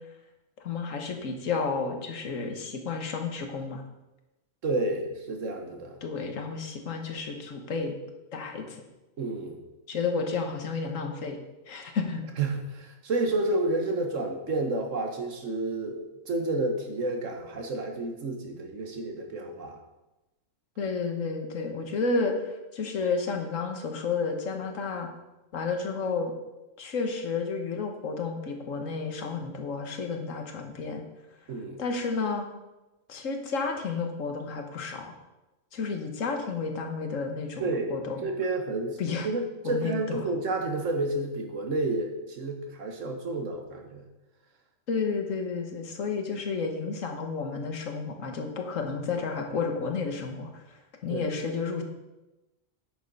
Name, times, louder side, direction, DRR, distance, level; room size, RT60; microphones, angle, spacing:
voice 1, 0.6-3.8 6.0-8.0 8.3-8.8 9.9-11.4 11.7-12.2 20.8-25.1 25.5-26.3 26.8-31.0 31.8-32.5 33.1-35.2 35.7-38.2 39.0-39.3 39.6-40.2 44.9-50.6 51.0-51.8, left 4 dB, 75° left, 4 dB, 1.5 m, -31 dB
voice 2, 4.6-6.0 9.2-9.6 12.4-19.8 31.5-31.8 37.6-38.0 38.2-39.0 39.2-44.0 51.1-51.4, right 2 dB, 75° right, 4 dB, 1.6 m, -30 dB
8.9 x 6.4 x 5.3 m, 1.0 s
omnidirectional pair, 1.3 m